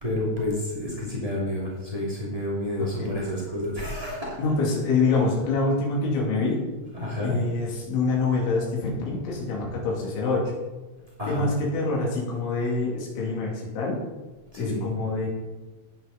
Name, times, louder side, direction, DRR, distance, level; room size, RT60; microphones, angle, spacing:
voice 1, 0.0-4.3 6.9-7.4 11.2-11.5 14.5-14.9, left 1 dB, 35° right, -6 dB, 0.5 m, -29 dB
voice 2, 2.8-3.1 4.4-6.6 7.2-10.5 11.3-14.0 14.6-15.3, left 3 dB, 65° left, -3 dB, 5.0 m, -26 dB
13.5 x 9.6 x 4.1 m, 1.2 s
omnidirectional pair, 5.9 m